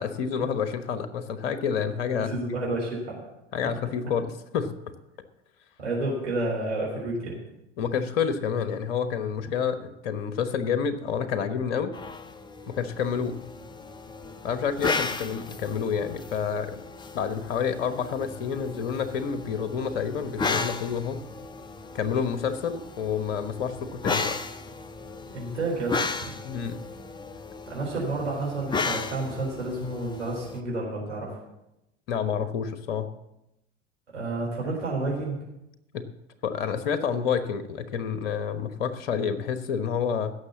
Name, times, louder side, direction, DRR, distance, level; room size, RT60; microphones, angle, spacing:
voice 1, 0.0-2.3 3.5-4.7 7.8-11.9 12.7-13.4 14.4-16.8 17.1-21.2 21.9-24.3 26.4-26.8 32.1-33.1 35.9-36.1 36.4-40.3, left 7 dB, 55° left, 11 dB, 1.2 m, -28 dB
voice 2, 2.1-3.2 5.8-7.4 25.3-26.3 27.7-31.4 34.1-35.4, right 2 dB, 75° right, -4 dB, 4.2 m, -30 dB
sound 1, 11.9-30.6, left 4 dB, 15° left, 0.7 m, -35 dB
16.5 x 6.7 x 7.2 m, 0.88 s
figure-of-eight pair, 80°, 35 cm